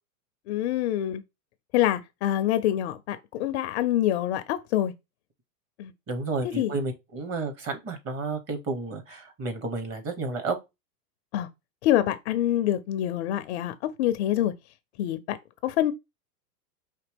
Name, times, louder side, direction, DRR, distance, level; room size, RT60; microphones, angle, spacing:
voice 1, 0.5-1.2 1.7-4.9 5.8-5.9 6.4-6.7 11.3-11.5 11.8-14.5 15.0-15.4 15.6-15.9, left 12 dB, 45° left, 0.5 m, -26 dB
voice 2, 6.1-10.6, right 3 dB, 30° right, 1.2 m, -31 dB
5.0 x 2.8 x 3.4 m
hypercardioid pair, 120°, 49 cm